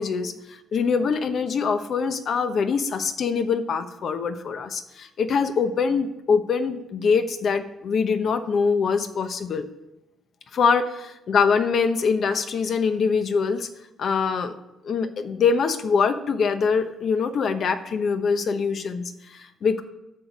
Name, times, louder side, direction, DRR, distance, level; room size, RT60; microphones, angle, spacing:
voice 1, 0.0-0.3 0.7-9.7 10.5-13.7 14.0-14.6 14.8-19.8, left 5 dB, 60° left, 9 dB, 0.9 m, -23 dB
10.5 x 6.6 x 6.1 m, 0.94 s
cardioid pair, 90°, 0 cm